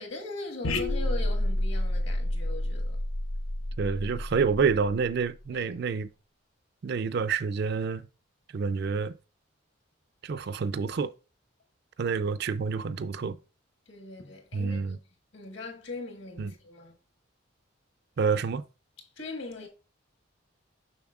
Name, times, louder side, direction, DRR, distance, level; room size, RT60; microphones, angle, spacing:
voice 1, 0.0-3.0 5.5-5.7 13.9-14.9 15.3-16.9 19.2-19.7, left 2 dB, 60° left, 1.6 m, -40 dB
sound 1, 0.6-5.3, left 1 dB, 85° left, 0.8 m, -30 dB
voice 2, 3.8-6.1 6.8-8.1 8.5-9.1 10.2-11.1 12.0-13.4 14.5-15.0 16.4-16.5 18.2-18.6, right 5 dB, 50° right, 0.4 m, -28 dB
7.0 x 5.8 x 2.3 m
head